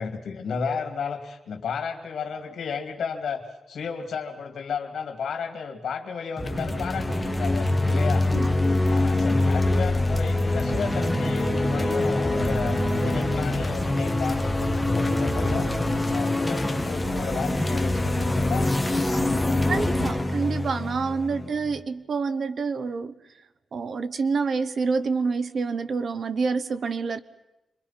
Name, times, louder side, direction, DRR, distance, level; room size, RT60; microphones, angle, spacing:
voice 1, 0.0-8.3 8.8-18.7 21.3-21.5, left 5 dB, 85° left, 6 dB, 2.5 m, -33 dB
sound 1, 6.4-21.8, left 1 dB, 5° left, 1.6 m, -24 dB
voice 2, 19.7-23.1 23.7-27.2, right 4 dB, 55° right, 13 dB, 0.8 m, -27 dB
27.5 x 24.0 x 5.8 m, 0.96 s
wide cardioid pair, 150°, 0 cm